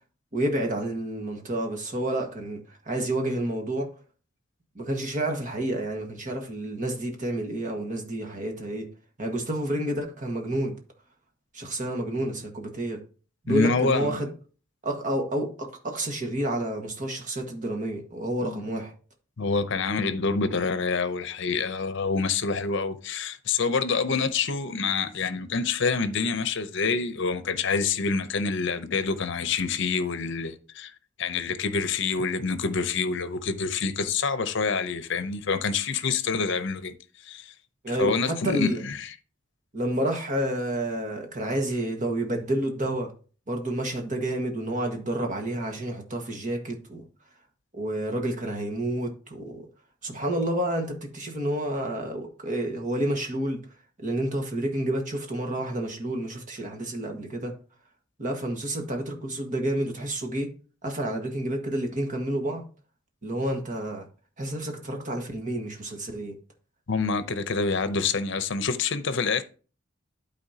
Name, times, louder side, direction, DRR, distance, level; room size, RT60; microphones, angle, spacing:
voice 1, 0.3-3.9 4.7-8.9 9.2-10.8 11.5-13.0 13.4-14.3 14.8-18.9 37.8-38.8 39.7-43.1 43.5-47.0 47.7-49.7 50.0-53.6 54.0-57.5 58.2-60.5 60.8-62.6 63.2-64.1 64.4-66.4, right 1 dB, 40° right, 1.5 m, -29 dB
voice 2, 13.5-14.1 18.4-18.6 19.4-30.9 31.2-36.9 37.2-37.5 38.0-39.1 66.9-69.4, left 4 dB, 65° left, 0.7 m, -27 dB
12.0 x 4.3 x 2.8 m
head